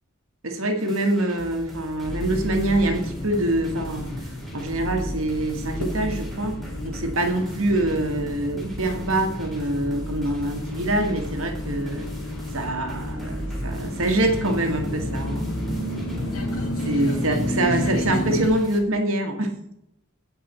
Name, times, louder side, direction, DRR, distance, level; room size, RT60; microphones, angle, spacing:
voice 1, 0.4-4.1 4.5-6.6 6.8-12.1 12.5-15.5 16.8-19.5, right 1 dB, 65° right, 4 dB, 1.8 m, -25 dB
sound 1, 0.8-18.8, equal, ahead, 2.9 m, -44 dB
sound 2, 2.0-18.5, left 1 dB, 70° left, 2.7 m, -30 dB
16.0 x 5.4 x 4.3 m, 0.78 s
head